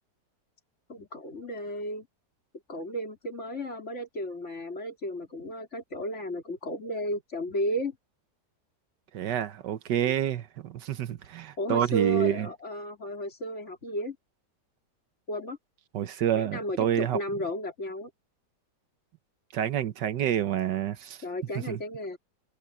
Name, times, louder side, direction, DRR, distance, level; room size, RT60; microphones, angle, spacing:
voice 1, 0.9-2.1 2.7-8.0 11.6-14.2 15.3-15.6 16.3-18.1 21.2-22.2, equal, 40° left, 3.8 m, -33 dB
voice 2, 9.1-12.5 15.9-17.2 19.5-21.2 21.5-21.8, right 10 dB, 80° right, 1.5 m, -28 dB
omnidirectional pair, 1.8 m